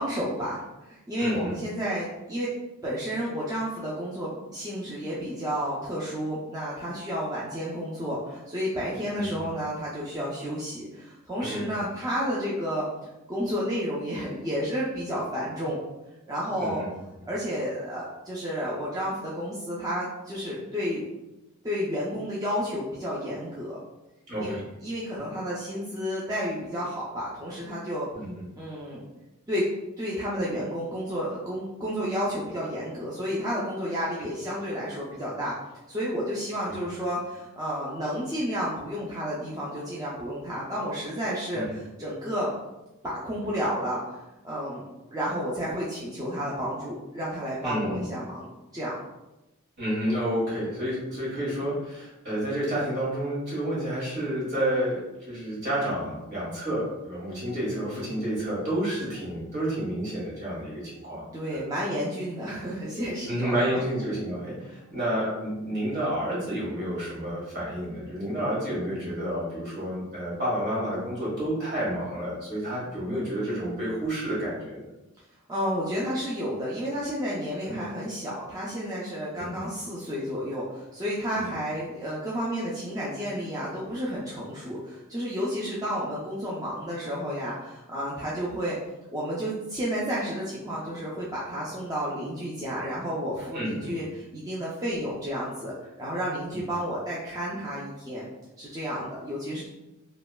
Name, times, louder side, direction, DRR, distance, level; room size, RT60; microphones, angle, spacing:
voice 1, 0.0-2.5 2.8-12.9 13.3-15.8 16.3-16.8 17.3-21.0 21.6-23.8 24.4-24.6 24.8-28.1 28.6-29.0 29.5-29.7 30.0-35.5 35.9-42.5 43.0-44.0 44.4-44.8 45.1-48.5 48.7-48.9 61.3-63.8 64.6-64.8 75.5-88.8 89.1-98.3 98.6-99.6, equal, 15° right, -7 dB, 0.4 m, -31 dB
voice 2, 1.2-1.5 9.1-9.3 11.4-11.8 16.6-16.9 24.3-24.6 28.1-28.3 36.6-36.7 41.5-41.7 47.6-48.1 49.8-61.2 61.5-61.6 63.3-74.9 77.6-77.8 79.4-79.6 81.3-81.5 93.5-93.9 96.5-96.6, equal, 50° right, -7 dB, 1.4 m, -30 dB
3.0 x 2.1 x 2.2 m, 0.97 s
head